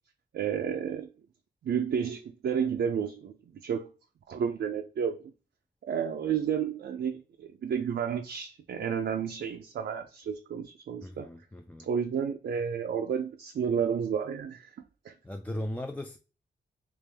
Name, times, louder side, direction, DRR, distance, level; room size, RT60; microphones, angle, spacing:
voice 1, 0.3-1.1 1.6-3.3 3.6-3.9 4.3-5.2 5.8-11.3 11.8-14.7 15.0-15.1, right 7 dB, 60° right, 0.5 m, -31 dB
voice 2, 11.0-11.9 15.2-16.2, left 1 dB, 10° left, 0.3 m, -37 dB
3.4 x 3.0 x 3.3 m
cardioid pair, 85°, 20 cm